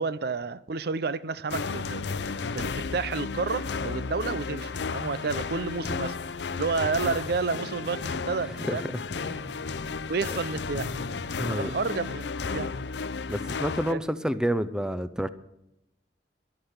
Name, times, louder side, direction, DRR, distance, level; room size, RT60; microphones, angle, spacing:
voice 1, 0.0-6.1 6.5-8.9 10.1-10.9 11.5-12.7 13.9-14.0, right 4 dB, 60° right, 0.6 m, -30 dB
sound 1, 1.5-13.9, left 4 dB, 70° left, 0.6 m, -33 dB
sound 2, 7.4-11.3, left 1 dB, 80° right, 5.2 m, -46 dB
voice 2, 8.6-9.5 11.4-11.7 13.3-15.3, equal, 5° right, 0.6 m, -29 dB
13.5 x 11.5 x 6.6 m
head